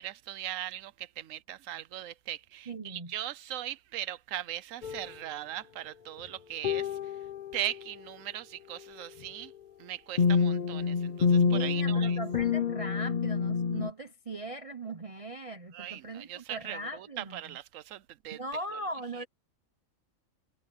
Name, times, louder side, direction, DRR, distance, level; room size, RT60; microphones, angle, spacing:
voice 1, 0.0-7.1 7.5-9.5 9.8-12.2 15.7-18.4 19.2-19.3, right 12 dB, 75° right, 1.0 m, -39 dB
voice 2, 2.7-3.1 11.4-17.4 18.3-19.2, right 2 dB, 30° right, 0.9 m, -39 dB
sound 1, 4.8-5.1 6.6-7.7 10.2-13.9, left 5 dB, 45° left, 0.6 m, -27 dB
omnidirectional pair, 1.4 m